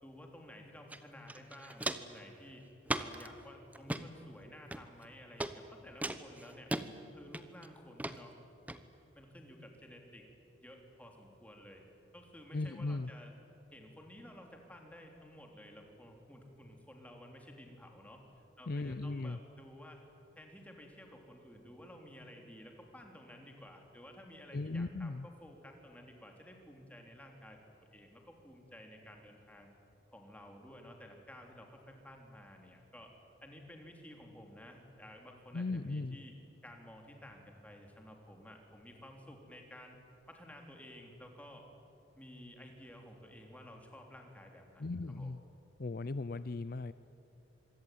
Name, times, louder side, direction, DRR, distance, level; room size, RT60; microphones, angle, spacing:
voice 1, 0.0-2.6 3.0-6.7 7.1-8.3 9.1-10.2 10.6-11.8 12.1-13.3 13.7-20.1 20.3-29.7 30.1-33.1 33.4-36.3 36.6-40.0 40.3-41.7 42.2-45.4, equal, 10° left, 2 dB, 3.4 m, -53 dB
Walk footsteps, 0.9-1.0 1.3-2.2 2.9-3.3 3.7-4.0 4.7-5.1 5.4-5.5 6.0-6.9 7.3-7.7 8.0-8.2 8.7-8.8, right 1 dB, 10° right, 0.9 m, -37 dB
voice 2, 12.5-13.1 18.7-19.4 24.5-25.3 35.5-36.2 44.8-45.4 45.8-46.9, left 3 dB, 50° left, 14 dB, 0.5 m, -37 dB
26.0 x 23.0 x 9.4 m, 2.8 s
head